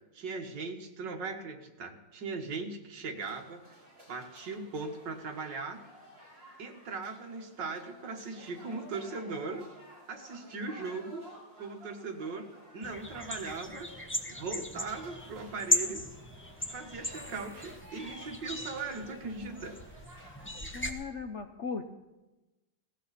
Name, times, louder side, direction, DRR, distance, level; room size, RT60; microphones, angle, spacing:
voice 1, 0.1-3.6 4.1-5.8 6.6-9.7 10.1-11.2 11.6-13.9 14.3-16.0 16.7-19.7, right 4 dB, 70° right, 4 dB, 2.2 m, -39 dB
sound 1, 3.2-20.5, right 1 dB, 50° right, 7.3 m, -54 dB
sound 2, 12.8-20.9, left 1 dB, 10° left, 0.8 m, -37 dB
voice 2, 20.7-21.9, left 5 dB, 60° left, 6 dB, 0.8 m, -37 dB
19.0 x 17.5 x 4.2 m, 1.1 s
omnidirectional pair, 2.0 m